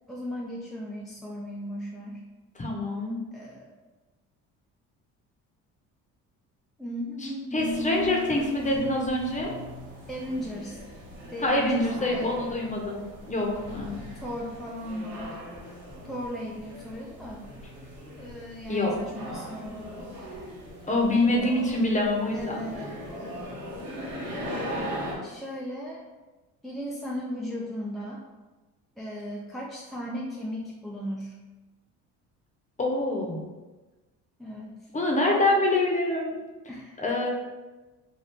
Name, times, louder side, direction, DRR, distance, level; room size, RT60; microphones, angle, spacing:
voice 1, 0.1-2.2 3.3-3.7 6.8-8.2 9.2-9.4 10.1-10.8 11.2-12.3 14.2-15.4 16.1-17.5 18.2-19.9 22.3-22.9 25.2-26.0 26.6-28.2 29.0-31.4 34.4-34.9 36.7-37.0, equal, ahead, -4 dB, 0.4 m, -36 dB
voice 2, 2.6-3.2 7.2-9.5 11.4-13.9 18.7-19.2 20.9-22.6 32.8-33.4 34.9-36.4 37.0-37.3, left 2 dB, 20° left, 0 dB, 0.8 m, -26 dB
sound 1, 7.6-25.2, equal, 75° right, 1.1 m, -40 dB
2.9 x 2.3 x 3.5 m, 1.2 s
supercardioid pair, 75°, 35 cm